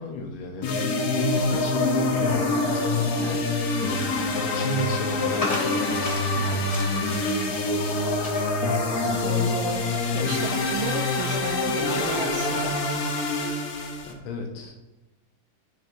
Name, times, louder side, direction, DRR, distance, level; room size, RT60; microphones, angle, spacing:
voice 1, 0.0-3.1 3.8-4.1 4.4-7.2 14.0-14.8, left 2 dB, 85° left, 2 dB, 1.7 m, -33 dB
sound 1, 0.6-14.1, left 3 dB, 60° left, 1.0 m, -25 dB
sound 2, 1.5-12.4, left 2 dB, 35° left, 0.6 m, -40 dB
voice 2, 3.1-3.5 9.1-12.8, right 4 dB, 80° right, 5 dB, 1.5 m, -33 dB
10.5 x 4.4 x 2.5 m, 1.1 s
omnidirectional pair, 2.2 m